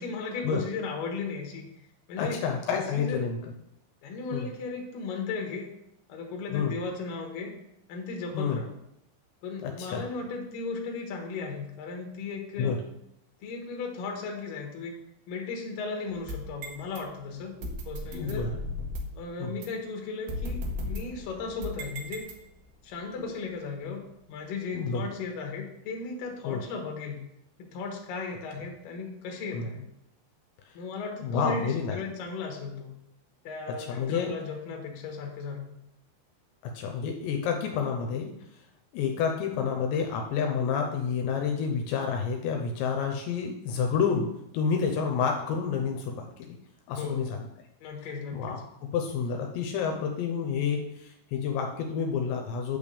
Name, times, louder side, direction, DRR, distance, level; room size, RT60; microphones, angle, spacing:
voice 1, 0.0-1.7 2.1-2.4 2.7-3.3 4.0-5.7 6.1-7.6 7.9-8.7 9.4-12.8 13.4-15.0 15.3-17.6 17.8-18.5 19.1-22.3 22.8-24.0 24.3-27.2 27.6-29.9 30.7-32.9 33.4-35.8 46.9-47.2 47.8-48.6, left 4 dB, 65° left, 2 dB, 2.4 m, -36 dB
voice 2, 2.2-3.4 4.3-4.5 6.5-6.7 8.3-8.6 9.6-10.0 12.6-12.8 17.6-17.7 18.1-18.5 19.4-19.5 24.7-25.0 26.4-26.6 29.5-29.7 31.2-32.0 33.9-34.3 36.7-38.3 38.9-46.6 46.9-47.4 48.3-52.8, left 6 dB, 80° left, 2 dB, 2.9 m, -29 dB
sound 1, 16.1-17.0 17.6-19.2 19.6-19.7 20.3-22.7, left 1 dB, 75° right, 2.2 m, -36 dB
8.9 x 3.5 x 6.8 m, 0.80 s
omnidirectional pair, 5.4 m